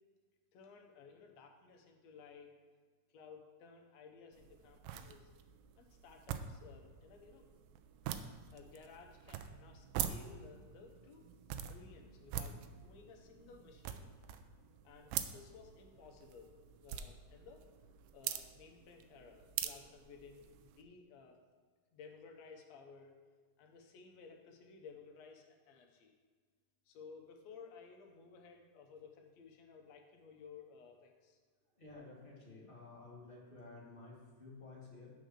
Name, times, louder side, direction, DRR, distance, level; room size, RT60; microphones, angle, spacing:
voice 1, 0.5-2.5 3.1-5.3 5.8-7.5 8.5-11.2 11.5-14.0 14.8-16.5 16.8-17.6 18.1-21.4 21.9-23.1 23.6-26.2 26.9-31.4, left 5 dB, 70° left, 2 dB, 1.7 m, -57 dB
sound 1, 4.3-20.8, right 10 dB, 85° right, 2.2 m, -45 dB
voice 2, 31.8-35.1, left 3 dB, 30° left, -5 dB, 1.0 m, -53 dB
7.6 x 5.1 x 6.5 m, 1.5 s
omnidirectional pair, 3.8 m